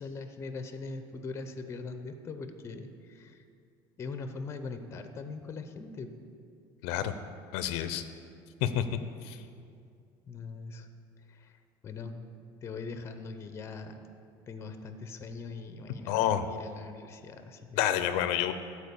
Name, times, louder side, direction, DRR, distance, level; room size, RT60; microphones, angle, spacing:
voice 1, 0.0-3.4 4.0-6.1 10.3-10.9 11.3-11.6 11.8-12.2 12.6-14.0 14.5-17.8, left 4 dB, 25° left, 8 dB, 0.7 m, -41 dB
voice 2, 6.8-7.1 7.5-8.0 8.6-8.8 9.2-9.4 16.1-16.4 17.8-18.5, left 11 dB, 85° left, 10 dB, 0.5 m, -28 dB
13.0 x 4.4 x 7.0 m, 2.3 s
cardioid pair, 145°, 10 cm